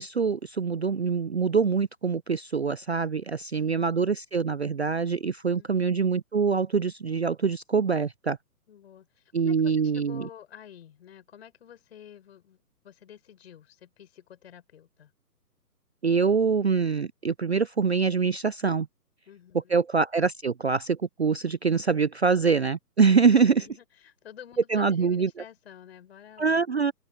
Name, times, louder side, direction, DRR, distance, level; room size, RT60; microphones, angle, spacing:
voice 1, 0.0-8.4 9.3-10.3 16.0-18.9 19.7-23.7 24.7-25.3 26.4-26.9, right 5 dB, 45° right, 0.4 m, -24 dB
voice 2, 8.7-12.6 12.8-15.1 19.3-19.8 23.5-26.6, left 10 dB, 40° left, 6.1 m, -50 dB
open air
hypercardioid pair, 160°, 48 cm